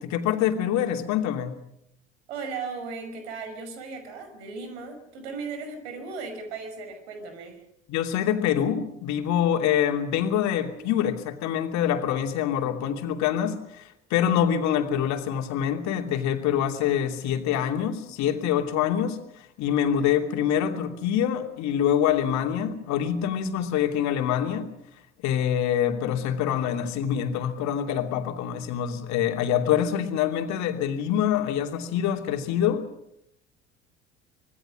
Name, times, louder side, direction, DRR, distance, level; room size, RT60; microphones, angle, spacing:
voice 1, 0.0-1.6 7.9-19.2 19.6-24.7 25.2-32.9, left 9 dB, 55° left, 5 dB, 2.8 m, -25 dB
voice 2, 2.3-7.6, right 4 dB, 70° right, 8 dB, 5.7 m, -36 dB
26.0 x 21.0 x 6.4 m, 0.77 s
figure-of-eight pair, 60°, 34 cm